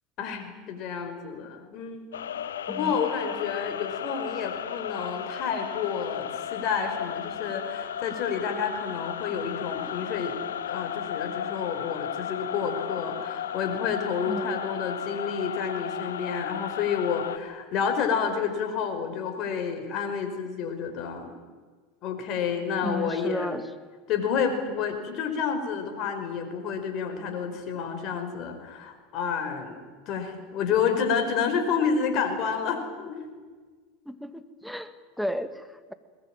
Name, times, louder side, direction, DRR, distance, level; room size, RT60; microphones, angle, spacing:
voice 1, 0.2-2.1 2.7-10.3 10.7-21.3 22.0-23.6 24.1-29.8 30.1-33.2, left 6 dB, 50° left, 6 dB, 5.1 m, -29 dB
sound 1, 2.1-17.4, left 9 dB, 85° left, 0.9 m, -34 dB
voice 2, 22.8-23.6 34.1-35.9, equal, ahead, 10 dB, 2.0 m, -33 dB
21.5 x 20.5 x 9.1 m, 1.5 s
hypercardioid pair, 85°, 0 cm